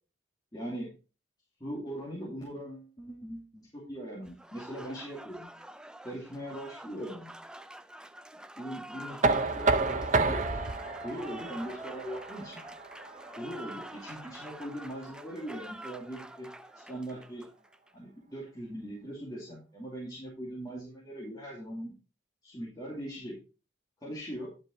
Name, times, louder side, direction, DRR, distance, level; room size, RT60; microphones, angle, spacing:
voice 1, 0.5-0.9 1.6-5.5 6.0-7.3 8.6-10.4 11.0-12.6 13.3-16.5 16.7-17.4 17.9-21.9 22.4-23.4 24.0-24.5, equal, 20° left, -5 dB, 2.5 m, -40 dB
Applause, 4.2-17.9, right 1 dB, 5° right, 0.3 m, -47 dB
Knock, 9.2-15.0, right 3 dB, 35° right, 0.7 m, -31 dB
10.5 x 6.0 x 4.1 m, 0.33 s
head